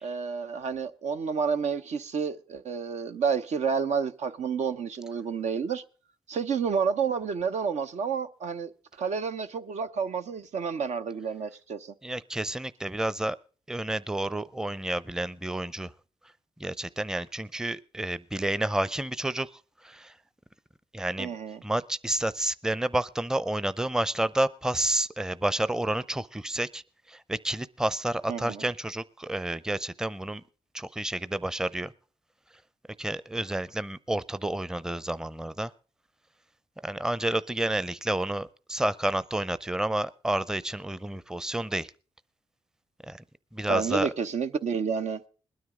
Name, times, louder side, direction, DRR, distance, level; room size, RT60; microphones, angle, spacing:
voice 1, 0.0-5.8 6.3-8.7 9.0-11.9 21.2-21.6 28.3-28.7 43.7-45.2, right 6 dB, 75° right, 0.7 m, -30 dB
voice 2, 12.0-13.4 13.7-15.9 16.6-19.5 19.9-20.1 20.9-21.3 21.6-26.8 27.3-30.4 30.7-31.9 33.0-35.7 36.8-41.9 43.1-43.2 43.5-44.1, right 1 dB, 5° right, 0.6 m, -30 dB
20.5 x 9.5 x 3.7 m
supercardioid pair, 50°, 12 cm